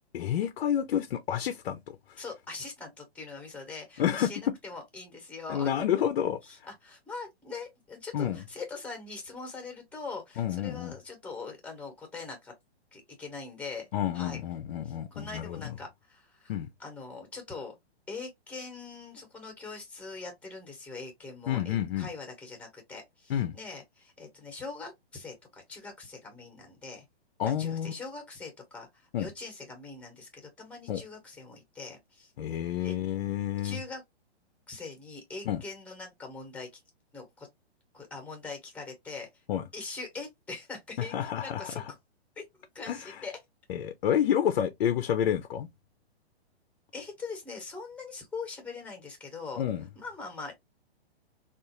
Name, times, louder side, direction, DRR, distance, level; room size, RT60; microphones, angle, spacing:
voice 1, 0.1-2.2 4.0-4.3 5.5-6.4 8.1-8.4 10.4-10.9 13.9-15.7 16.5-16.7 21.5-22.1 23.3-23.6 27.4-27.9 29.1-29.3 30.9-31.0 32.4-33.8 35.5-35.6 39.5-39.6 41.1-41.9 42.9-43.2 43.7-45.7 49.6-49.9, left 10 dB, 55° left, 0.5 m, -29 dB
voice 2, 2.2-5.7 6.4-12.5 12.9-13.9 14.1-14.4 14.8-17.7 18.1-27.0 27.5-32.3 32.7-33.0 33.6-34.0 34.7-36.8 37.1-37.5 37.9-39.3 39.7-41.8 42.4-42.5 42.7-43.4 46.9-49.6 49.9-50.5, left 4 dB, 5° left, 0.9 m, -42 dB
3.6 x 2.5 x 2.8 m
hypercardioid pair, 145°, 33 cm